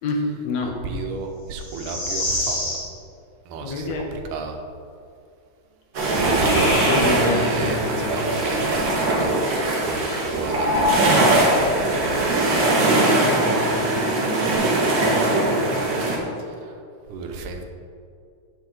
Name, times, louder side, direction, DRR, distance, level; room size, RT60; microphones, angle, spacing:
voice 1, 0.0-0.8 3.6-4.0 6.8-8.4 12.6-14.7 15.0-16.2, left 3 dB, 65° left, 1 dB, 2.2 m, -29 dB
voice 2, 0.8-2.7 3.5-4.6 6.2-9.4 9.8-10.1 10.3-11.2 16.4-16.8 17.1-17.6, right 4 dB, 85° right, 3 dB, 2.5 m, -33 dB
sound 1, 1.6-2.9 6.3-7.3 10.4-11.6 14.1-14.5, left 2 dB, 35° left, 3.3 m, -26 dB
sound 2, 5.9-16.2, right 2 dB, 45° right, 2.1 m, -21 dB
10.5 x 8.7 x 4.0 m, 2.4 s
omnidirectional pair, 3.6 m